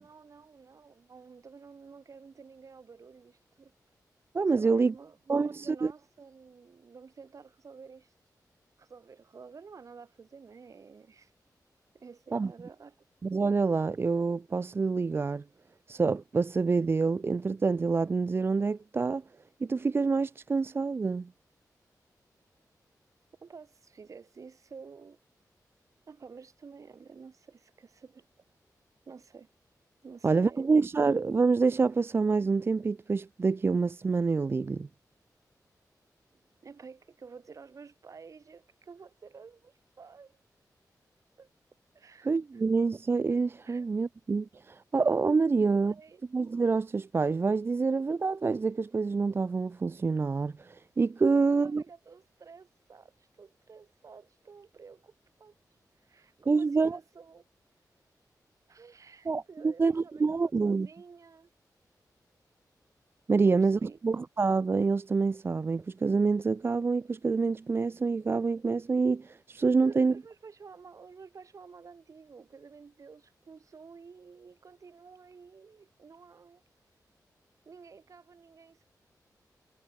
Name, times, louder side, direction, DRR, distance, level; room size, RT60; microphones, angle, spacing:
voice 1, 0.0-3.7 4.5-8.1 8.8-11.3 11.9-13.0 23.4-25.2 26.1-28.5 29.0-29.5 30.0-30.6 36.6-40.3 41.4-41.5 41.9-42.6 43.6-43.8 45.6-46.2 51.2-55.1 55.4-55.5 56.0-57.4 58.7-61.5 63.4-64.0 69.8-76.6 77.6-78.8, right 5 dB, 50° right, 4.9 m, -51 dB
voice 2, 4.3-4.9 5.3-5.9 12.3-12.5 13.2-15.4 15.9-19.2 19.6-21.3 30.2-34.9 42.2-45.9 46.3-51.8 56.5-57.0 59.3-60.9 63.3-70.1, right 4 dB, 35° right, 0.7 m, -27 dB
wide cardioid pair, 175°, 7 cm